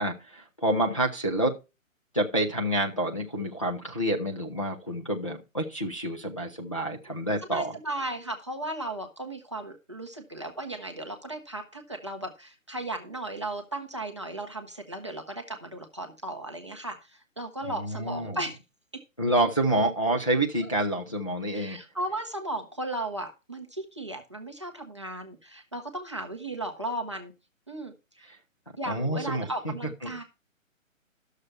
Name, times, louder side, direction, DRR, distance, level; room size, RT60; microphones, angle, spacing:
voice 1, 0.0-1.6 2.1-7.8 17.7-18.4 19.2-21.8 28.9-29.7 30.0-30.2, right 1 dB, 25° left, 0 dB, 0.6 m, -28 dB
voice 2, 7.5-18.6 21.5-27.3 27.7-28.3 28.8-30.2, right 1 dB, 20° right, 2 dB, 0.6 m, -36 dB
11.0 x 6.6 x 4.3 m, 0.28 s
hypercardioid pair, 175°, 41 cm